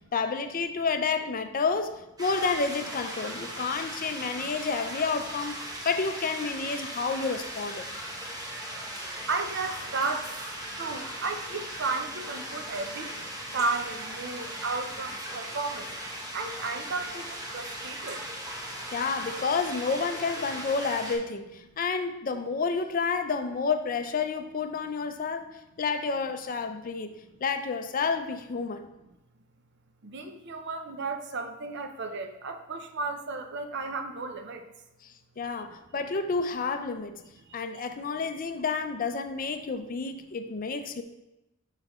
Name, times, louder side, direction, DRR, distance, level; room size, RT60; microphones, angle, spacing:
voice 1, 0.1-5.6 5.9-7.9 18.9-27.1 27.4-28.9 35.0-37.2 37.5-41.0, left 4 dB, 40° left, 8 dB, 0.4 m, -30 dB
sound 1, 2.2-21.2, right 1 dB, 15° right, 1.0 m, -38 dB
voice 2, 9.3-10.4 10.7-15.9 16.3-18.3 30.0-34.6 37.5-37.8, right 3 dB, 55° right, 6 dB, 0.6 m, -34 dB
6.5 x 6.0 x 3.0 m, 0.95 s
head